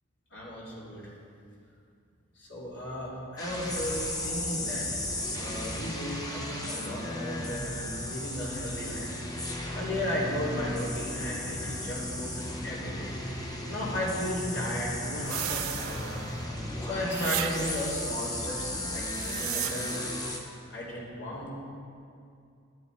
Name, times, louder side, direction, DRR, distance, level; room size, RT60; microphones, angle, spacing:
voice 1, 0.3-1.1 2.4-4.0 4.2-4.8 5.4-9.1 9.5-12.3 12.6-16.2 16.8-20.1 20.7-21.5, left 1 dB, 60° left, -6 dB, 2.9 m, -35 dB
sound 1, 3.4-20.4, left 1 dB, 20° left, 0.9 m, -35 dB
sound 2, 3.5-19.5, equal, 45° left, 1.4 m, -46 dB
sound 3, 15.3-16.5 17.1-18.0 18.9-20.2, right 16 dB, 85° right, 0.3 m, -36 dB
13.0 x 9.0 x 4.7 m, 2.4 s
head